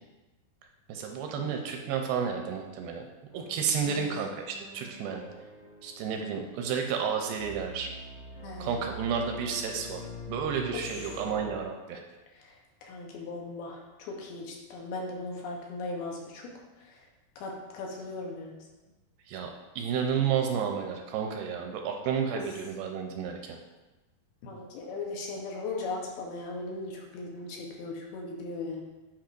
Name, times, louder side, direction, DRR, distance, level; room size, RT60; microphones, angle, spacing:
voice 1, 0.9-3.1 3.3-5.2 5.8-7.9 8.6-10.0 10.3-12.0 19.3-19.5 19.8-23.6, right 7 dB, 80° right, 3 dB, 2.4 m, -31 dB
sound 1, 3.3-11.6, left 1 dB, 55° left, 2.1 m, -45 dB
voice 2, 3.8-4.2 8.4-8.8 10.7-11.2 12.3-17.1 17.4-18.7 22.3-22.4 24.4-28.8, left 3 dB, 75° left, 0 dB, 2.8 m, -38 dB
10.5 x 4.8 x 2.6 m, 1.1 s
omnidirectional pair, 4.6 m